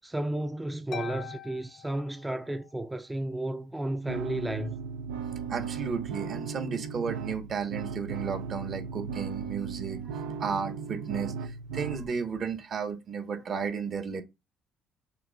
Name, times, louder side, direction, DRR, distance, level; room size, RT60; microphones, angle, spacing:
voice 1, 0.0-4.8, right 1 dB, 15° right, 0.4 m, -33 dB
Harp, 0.9-2.8, left 9 dB, 60° left, 0.8 m, -42 dB
sound 1, 4.1-12.1, right 6 dB, 90° right, 0.3 m, -36 dB
voice 2, 5.5-14.2, right 6 dB, 55° right, 0.9 m, -34 dB
6.6 x 2.4 x 2.2 m
supercardioid pair, 65°, 0 cm